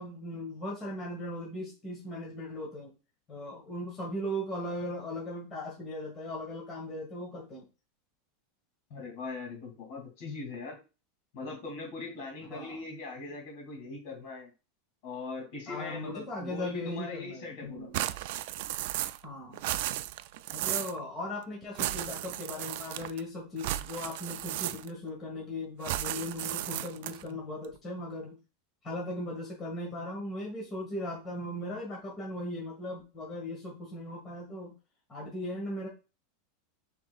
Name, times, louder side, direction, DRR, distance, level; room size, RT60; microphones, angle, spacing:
voice 1, 0.0-2.9 3.3-7.6 12.5-12.8 15.7-18.0 19.2-19.6 20.5-28.3 28.8-34.7 35.1-35.9, left 1 dB, 20° left, -2 dB, 1.5 m, -38 dB
voice 2, 8.9-10.8 11.3-14.5 15.0-17.9, left 3 dB, 55° left, 2 dB, 2.6 m, -40 dB
sound 1, 17.9-19.3 19.5-21.0 21.7-23.2 23.6-25.1 25.8-27.3, right 15 dB, 60° right, 0.3 m, -34 dB
6.0 x 3.5 x 2.4 m, 0.30 s
supercardioid pair, 155°, 0 cm